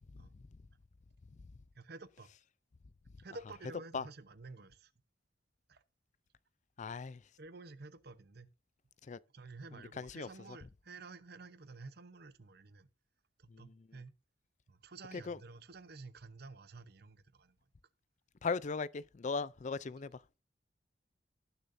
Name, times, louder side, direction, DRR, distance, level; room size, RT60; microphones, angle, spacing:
voice 1, 1.8-2.3 3.2-4.9 5.7-5.8 7.4-8.5 9.3-12.9 13.4-14.1 14.7-17.5, right 3 dB, 60° right, 0.9 m, -51 dB
voice 2, 6.8-7.2 9.1-9.2 10.0-10.3 13.5-13.7 15.2-15.4 18.4-20.1, left 4 dB, 40° left, 0.4 m, -37 dB
18.5 x 6.7 x 2.7 m
head